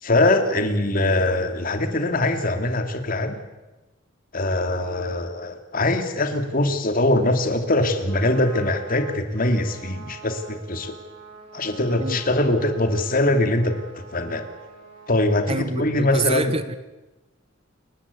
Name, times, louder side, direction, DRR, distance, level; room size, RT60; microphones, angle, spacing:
voice 1, 0.0-3.4 4.3-10.9 11.5-14.5 15.1-16.5, left 2 dB, 50° left, 2.7 m, -22 dB
Trumpet, 8.1-15.5, right 4 dB, 80° right, 7.7 m, -44 dB
voice 2, 15.5-16.8, right 3 dB, 30° right, 1.7 m, -26 dB
28.5 x 14.0 x 9.8 m
head